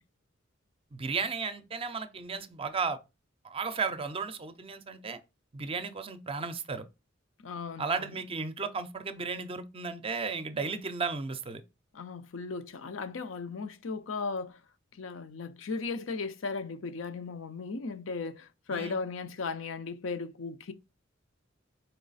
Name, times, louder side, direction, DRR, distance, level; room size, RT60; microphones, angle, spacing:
voice 1, 0.9-3.0 3.4-5.2 5.5-6.8 7.8-11.6 18.7-19.0, right 4 dB, 30° right, 0.5 m, -34 dB
voice 2, 7.4-8.2 11.9-14.6 15.0-20.7, left 4 dB, 85° left, 0.6 m, -36 dB
4.3 x 3.1 x 4.0 m
head